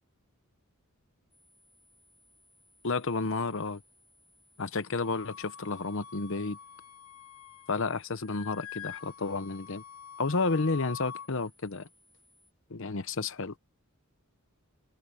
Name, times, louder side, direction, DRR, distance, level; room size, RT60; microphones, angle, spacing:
sound 1, 1.3-12.5, left 1 dB, ahead, 6.2 m, -65 dB
voice 1, 2.8-3.8 4.6-6.6 7.7-9.8 10.2-11.9 12.7-13.5, left 3 dB, 60° left, 0.9 m, -31 dB
Wind instrument woodwind instrument, 5.0-7.9 8.2-11.3, left 8 dB, 85° left, 1.3 m, -46 dB
head